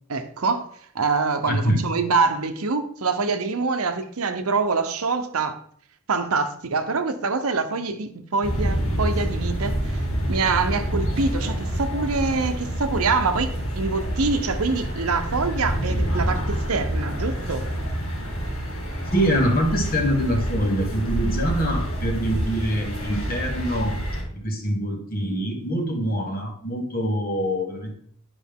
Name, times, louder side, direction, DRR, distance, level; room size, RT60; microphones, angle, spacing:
voice 1, 0.1-5.6 6.1-10.0 10.3-17.7, right 4 dB, 75° right, 0.8 m, -25 dB
voice 2, 1.5-1.8 19.1-24.0 24.3-28.0, equal, 40° left, 1.5 m, -24 dB
sound 1, 8.4-24.2, equal, 75° left, 3.3 m, -27 dB
10.5 x 5.2 x 3.6 m
head